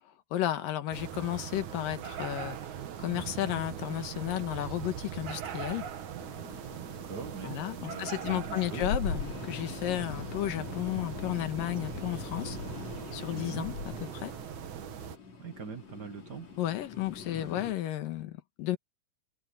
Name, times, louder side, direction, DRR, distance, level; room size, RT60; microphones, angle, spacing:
voice 1, 0.3-2.7 3.0-5.8 7.4-12.6 13.1-13.7 14.1-14.3 16.6-18.8, left 13 dB, 85° left, 3.1 m, -33 dB
sound 1, 0.9-15.2, right 9 dB, 65° right, 2.8 m, -41 dB
sound 2, 6.2-17.7, left 4 dB, 50° left, 5.0 m, -41 dB
voice 2, 6.9-8.9 13.3-13.7 15.4-16.5, right 6 dB, 45° right, 1.5 m, -42 dB
omnidirectional pair, 3.8 m